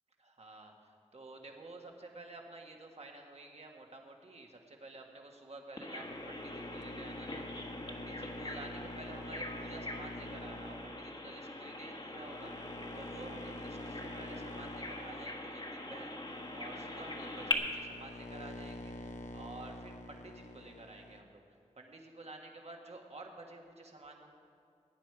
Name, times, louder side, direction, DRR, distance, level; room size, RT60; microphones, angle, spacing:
voice 1, 0.2-24.3, right 2 dB, 55° right, 2 dB, 1.6 m, -51 dB
Bird vocalization bird call bird song, 5.8-17.5, left 2 dB, 35° left, 1.4 m, -42 dB
sound 1, 6.0-21.2, left 1 dB, 80° left, 0.9 m, -48 dB
17.0 x 9.5 x 4.7 m, 2.5 s
wide cardioid pair, 55°, 13 cm